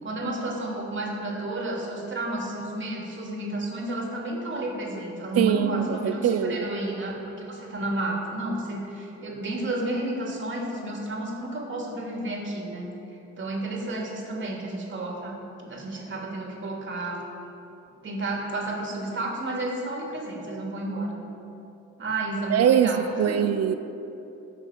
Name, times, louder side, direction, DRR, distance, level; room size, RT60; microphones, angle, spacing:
voice 1, 0.0-12.9 13.4-17.2 18.0-21.2 22.0-23.5, right 2 dB, 40° right, -1 dB, 2.6 m, -31 dB
voice 2, 5.4-6.6 22.5-23.7, right 9 dB, 55° right, 11 dB, 0.5 m, -22 dB
14.5 x 6.4 x 5.0 m, 2.9 s
cardioid pair, 90°, 30 cm